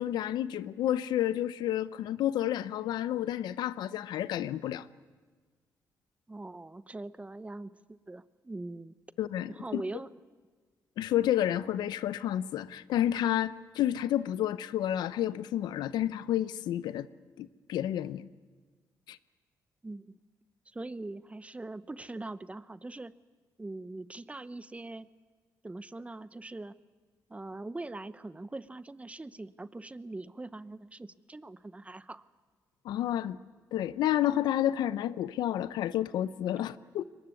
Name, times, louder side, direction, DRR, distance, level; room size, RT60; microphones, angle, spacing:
voice 1, 0.0-4.9 9.2-9.8 11.0-17.1 17.4-18.3 19.1-19.2 32.8-33.4 33.7-37.0, left 12 dB, 85° left, 0.7 m, -30 dB
voice 2, 6.3-8.9 9.5-10.1 19.8-20.2 20.7-23.1 23.6-25.1 25.6-26.7 27.3-32.2, right 2 dB, 20° right, 0.8 m, -42 dB
22.5 x 20.0 x 9.6 m
cardioid pair, 75°, 7 cm